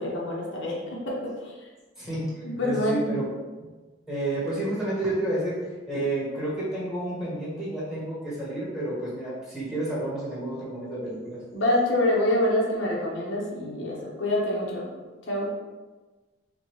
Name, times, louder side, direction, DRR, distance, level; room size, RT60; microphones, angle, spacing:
voice 1, 0.0-1.5 2.4-3.1 11.5-14.9 15.3-15.5, left 1 dB, 85° left, -3 dB, 0.9 m, -26 dB
voice 2, 2.0-3.2 4.1-11.4, right 1 dB, ahead, -9 dB, 1.4 m, -30 dB
5.1 x 2.3 x 3.1 m, 1.2 s
head